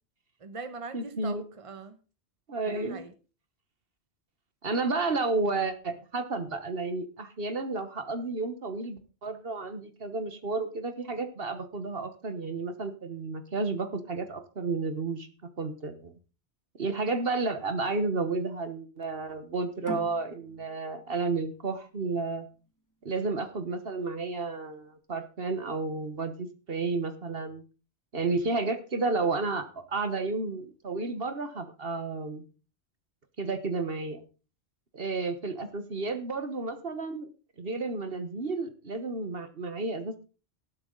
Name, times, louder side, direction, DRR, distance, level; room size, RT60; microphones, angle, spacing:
voice 1, 0.4-2.0 2.7-3.1, right 4 dB, 30° right, 1.2 m, -41 dB
voice 2, 0.9-1.4 2.5-3.0 4.6-15.3 15.6-16.1 16.8-22.5 23.0-27.6 28.1-32.4 33.4-34.2 34.9-37.3 37.6-40.2, right 3 dB, 55° right, 1.5 m, -32 dB
sound 1, 19.8-23.1, left 1 dB, 15° left, 2.3 m, -44 dB
18.5 x 7.8 x 4.0 m
omnidirectional pair, 1.2 m